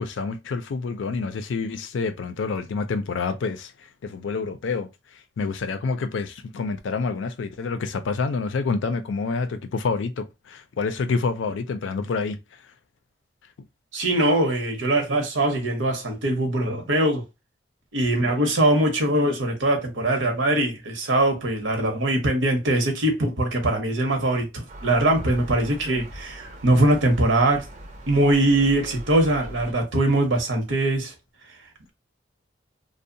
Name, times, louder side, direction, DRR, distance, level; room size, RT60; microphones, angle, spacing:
voice 1, 0.0-3.7 4.0-4.9 5.4-12.4, left 4 dB, 80° left, 0.4 m, -27 dB
voice 2, 13.9-17.3 17.9-27.7 28.1-31.1 31.4-31.9, right 1 dB, 90° right, 0.8 m, -22 dB
Gull seagull, 24.7-29.7, right 1 dB, 40° right, 0.5 m, -41 dB
2.7 x 2.0 x 2.5 m
head